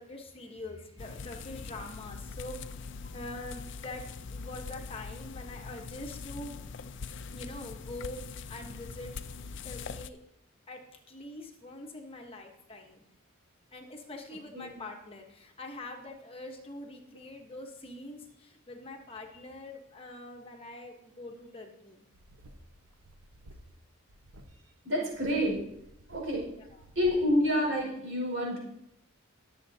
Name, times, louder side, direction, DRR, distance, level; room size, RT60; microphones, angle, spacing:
voice 1, 0.0-6.5 7.3-9.2 9.6-10.2 10.7-10.8 11.1-13.0 13.7-22.1 26.8-26.9, left 2 dB, 25° left, 2 dB, 1.1 m, -44 dB
sound 1, 1.0-10.1, left 4 dB, 55° left, 0.5 m, -42 dB
sound 2, 22.1-23.8 24.1-24.5 25.1-27.3, right 1 dB, 80° right, 1.1 m, -54 dB
voice 2, 24.8-25.6 26.1-26.5 26.9-28.6, left 1 dB, 60° right, -2 dB, 4.9 m, -28 dB
22.0 x 7.4 x 2.8 m, 0.79 s
head